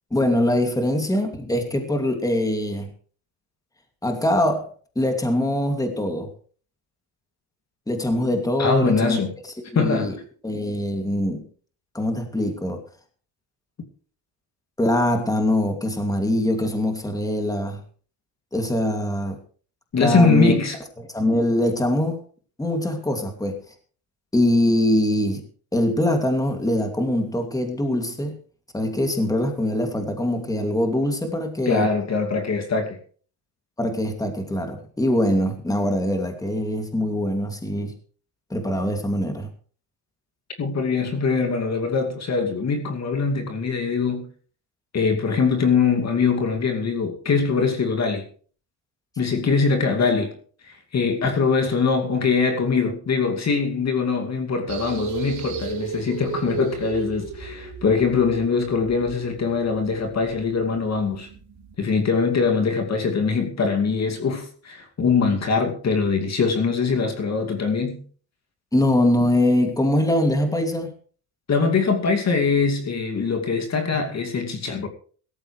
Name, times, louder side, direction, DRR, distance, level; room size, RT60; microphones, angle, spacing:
voice 1, 0.1-2.9 4.0-4.7 5.0-6.3 7.9-9.2 9.7-10.1 10.4-11.4 11.9-12.8 14.8-17.8 18.5-19.4 20.0-20.5 21.1-22.2 22.6-23.6 24.3-25.4 25.7-28.3 28.7-31.9 33.8-37.9 38.5-39.5 68.7-70.9, left 1 dB, 10° left, 2.6 m, -23 dB
voice 2, 8.6-9.3 9.7-10.1 19.9-20.8 31.7-33.0 40.6-44.3 44.9-48.2 49.2-50.3 50.6-61.3 61.8-68.0 71.5-74.9, left 5 dB, 40° left, 2.5 m, -22 dB
sound 1, 54.7-61.7, right 8 dB, 70° right, 3.9 m, -35 dB
17.0 x 14.0 x 3.3 m
cardioid pair, 115°, 42 cm